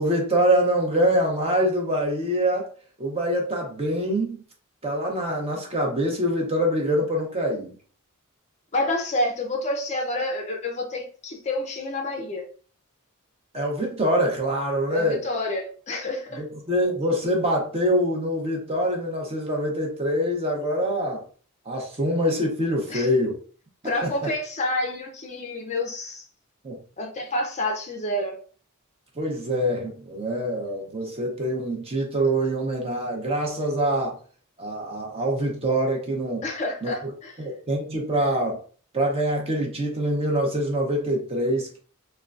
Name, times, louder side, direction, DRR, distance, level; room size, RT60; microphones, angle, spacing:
voice 1, 0.0-2.7 3.0-4.4 4.8-7.7 13.5-15.2 16.4-21.2 21.7-23.3 24.0-24.1 26.6-26.8 29.2-34.2 34.6-36.4 36.8-37.1 37.4-38.6 38.9-41.8, equal, 25° right, 0.7 m, -25 dB
voice 2, 8.7-12.5 14.9-16.4 22.9-23.1 23.8-26.2 27.0-28.4 36.4-37.5, left 1 dB, 30° left, 0.5 m, -28 dB
3.6 x 2.1 x 2.4 m
head